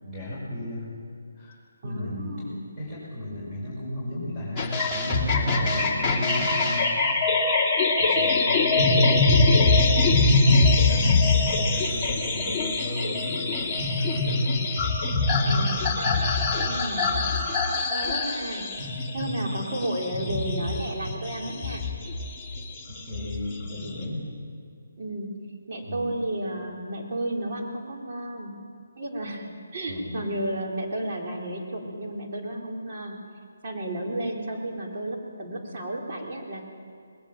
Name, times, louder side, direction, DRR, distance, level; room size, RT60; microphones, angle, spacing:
voice 1, 0.0-0.9 1.3-1.6 1.8-2.5 2.8-7.0 8.0-13.7 14.0-14.4 15.3-15.6 22.9-24.3 25.8-26.1 29.9-30.3, left 1 dB, 10° right, -10 dB, 6.8 m, -35 dB
voice 2, 1.8-2.8 15.4-15.9 16.6-17.2 17.9-18.7 19.1-21.9 25.0-25.3 25.7-28.5 29.0-33.2 33.6-36.6, right 1 dB, 45° right, -2 dB, 4.1 m, -32 dB
sound 1, 4.6-24.0, left 3 dB, 5° left, 2.6 m, -23 dB
20.0 x 18.0 x 7.5 m, 2.2 s
figure-of-eight pair, 150°, 0 cm